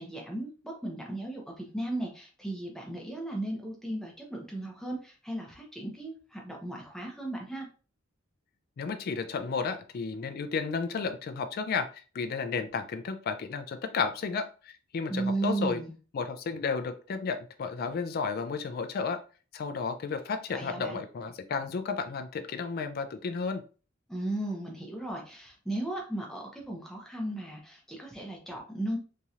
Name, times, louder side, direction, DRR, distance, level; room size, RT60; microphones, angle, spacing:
voice 1, 0.0-7.7 15.1-15.9 20.5-21.0 24.1-29.0, right 2 dB, ahead, 0 dB, 0.6 m, -35 dB
voice 2, 8.8-15.8 16.1-19.2 19.5-23.6, left 5 dB, 50° left, 9 dB, 0.3 m, -33 dB
3.0 x 2.7 x 2.4 m, 0.36 s
head